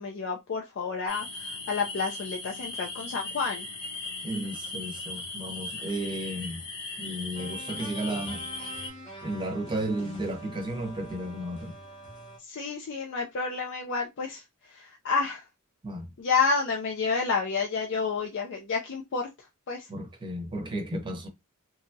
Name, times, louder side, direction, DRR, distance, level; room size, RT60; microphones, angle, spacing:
voice 1, 0.0-3.7 12.4-15.4 16.2-19.3 19.7-19.9, left 5 dB, 55° left, 0.4 m, -30 dB
sound 1, 1.1-8.9, left 3 dB, 75° left, 0.9 m, -38 dB
voice 2, 4.2-6.7 7.0-8.4 9.2-11.8 15.8-16.1 19.9-21.3, right 1 dB, 20° right, 0.7 m, -33 dB
sound 2, 7.3-12.4, right 1 dB, 25° left, 0.8 m, -44 dB
2.8 x 2.3 x 2.6 m
head